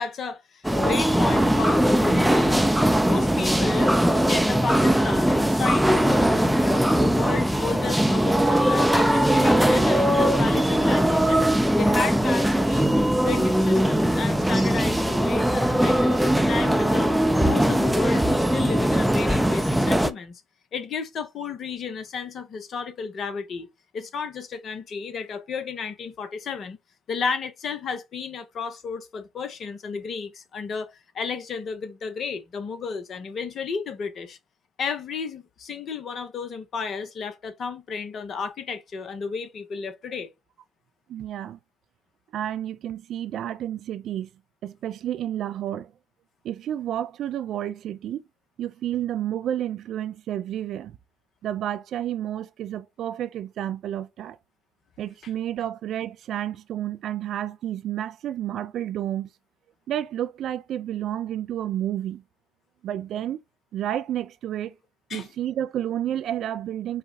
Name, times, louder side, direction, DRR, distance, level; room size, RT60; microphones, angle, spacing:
voice 1, 0.0-12.9 13.2-20.4 20.7-23.7 23.9-26.8 27.1-34.4 34.8-40.3 55.2-55.3 65.1-65.3, left 5 dB, 50° left, 0.9 m, -33 dB
sound 1, 0.6-20.1, equal, 5° right, 0.6 m, -20 dB
voice 2, 41.1-41.6 42.3-44.3 44.6-45.9 46.4-48.2 48.6-51.0 51.4-54.4 55.0-59.3 59.9-62.2 62.8-63.4 63.7-64.7 65.1-67.0, right 11 dB, 55° right, 0.4 m, -30 dB
4.9 x 2.2 x 4.3 m
hypercardioid pair, 55°, 0 cm